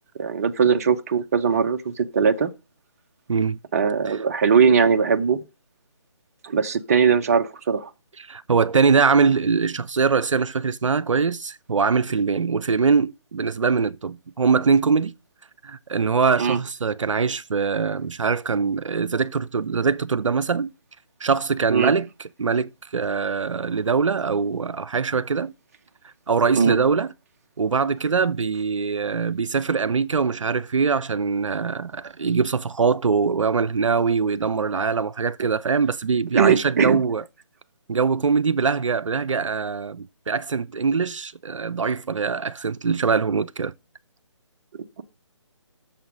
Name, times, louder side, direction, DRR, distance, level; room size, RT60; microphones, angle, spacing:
voice 1, 0.2-2.5 3.7-5.4 6.4-7.9 16.4-16.6 21.7-21.9 26.5-26.8 36.3-37.0, right 6 dB, 30° right, 0.6 m, -20 dB
voice 2, 8.2-15.1 15.6-20.7 21.2-25.5 26.3-27.1 27.6-37.2 37.9-43.7, right 5 dB, 80° right, 0.4 m, -22 dB
6.7 x 5.7 x 6.0 m
figure-of-eight pair, 145°, 16 cm